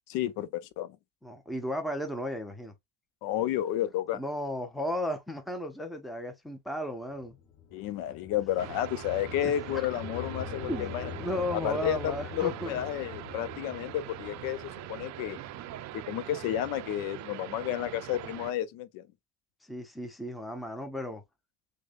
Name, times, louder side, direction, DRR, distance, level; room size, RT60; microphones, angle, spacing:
voice 1, 0.1-1.0 3.2-4.2 7.7-11.1 11.6-15.4 15.9-19.0, left 12 dB, 90° left, 0.6 m, -31 dB
voice 2, 1.2-2.7 4.1-7.4 9.4-9.8 10.7-12.8 19.6-21.2, equal, ahead, 0.5 m, -35 dB
sound 1, 7.1-17.3, left 7 dB, 45° left, 1.0 m, -44 dB
sound 2, 8.6-18.5, right 13 dB, 55° right, 0.4 m, -42 dB
6.4 x 2.2 x 2.4 m
cardioid pair, 150°, 33 cm